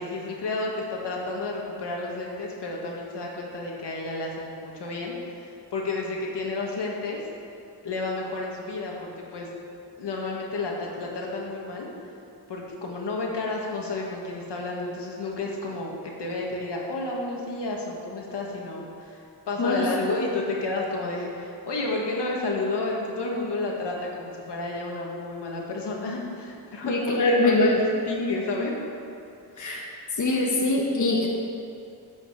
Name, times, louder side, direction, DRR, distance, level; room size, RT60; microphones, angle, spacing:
voice 1, 0.0-7.2 7.8-9.5 10.0-11.9 12.5-15.9 16.2-27.0 27.3-28.7 29.5-29.7, left 2 dB, 80° left, -2 dB, 1.9 m, -31 dB
voice 2, 19.6-19.9 26.8-27.8 29.6-29.9 30.2-31.3, left 2 dB, 45° left, -2 dB, 1.4 m, -23 dB
11.0 x 5.8 x 7.3 m, 2.7 s
wide cardioid pair, 115°, 41 cm